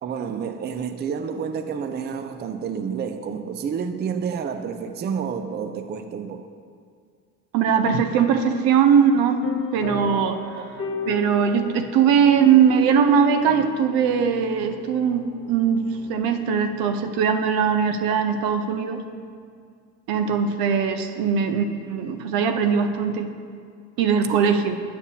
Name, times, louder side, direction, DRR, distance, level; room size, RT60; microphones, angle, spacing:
voice 1, 0.0-6.5 10.6-10.7, right 6 dB, 30° right, 8 dB, 0.4 m, -29 dB
voice 2, 7.5-9.4 9.7-10.4 11.1-19.0 20.1-23.3 24.0-24.7, right 7 dB, 80° right, 7 dB, 0.7 m, -20 dB
sound 1, 9.4-17.5, left 5 dB, 45° left, 0.9 m, -35 dB
10.0 x 6.8 x 2.8 m, 2.2 s
supercardioid pair, 90°, 34 cm